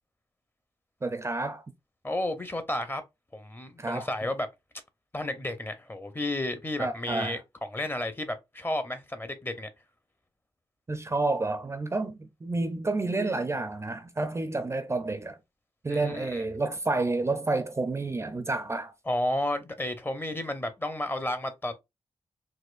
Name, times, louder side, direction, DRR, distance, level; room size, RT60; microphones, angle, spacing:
voice 1, 1.0-1.6 3.8-4.1 6.8-7.4 10.9-15.4 15.8-18.9, right 2 dB, 25° right, 0.5 m, -30 dB
voice 2, 2.0-3.0 3.3-4.5 5.1-9.7 15.9-16.4 19.1-21.8, left 1 dB, 20° left, 0.7 m, -32 dB
4.1 x 2.5 x 2.4 m
cardioid pair, 85°, 11 cm